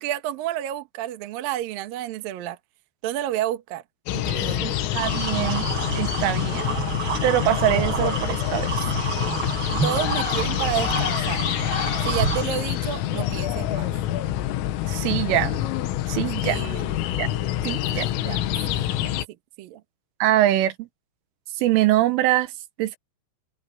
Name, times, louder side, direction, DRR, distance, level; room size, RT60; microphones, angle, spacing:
voice 1, 0.0-2.6 3.0-3.8 4.1-4.8 9.8-11.4 12.0-13.9 16.4-16.9 17.9-19.1 19.6-19.8, right 12 dB, 65° right, 2.4 m, -30 dB
sound 1, 4.1-19.3, left 12 dB, 85° left, 3.9 m, -26 dB
voice 2, 4.6-5.7 6.0-6.6 7.2-8.7 14.9-15.6 16.1-16.6 17.2-17.3 17.6-18.1 20.2-20.9 21.6-22.5 22.8-23.0, right 14 dB, 80° right, 3.6 m, -23 dB
sound 2, 4.9-12.4, right 4 dB, 30° right, 5.0 m, -29 dB
omnidirectional pair, 5.8 m